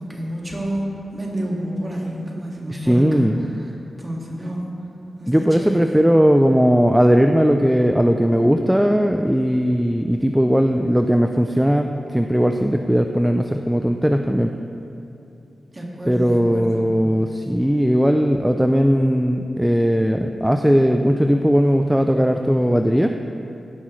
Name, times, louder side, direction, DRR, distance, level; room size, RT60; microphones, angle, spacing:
voice 1, 0.0-3.3 4.0-4.7 5.2-6.0 15.7-16.9, right 1 dB, 25° right, -2 dB, 1.9 m, -29 dB
voice 2, 2.7-3.5 5.3-14.5 16.1-23.1, equal, 5° right, 5 dB, 0.3 m, -18 dB
16.5 x 9.7 x 3.1 m, 2.8 s
wide cardioid pair, 140°, 0 cm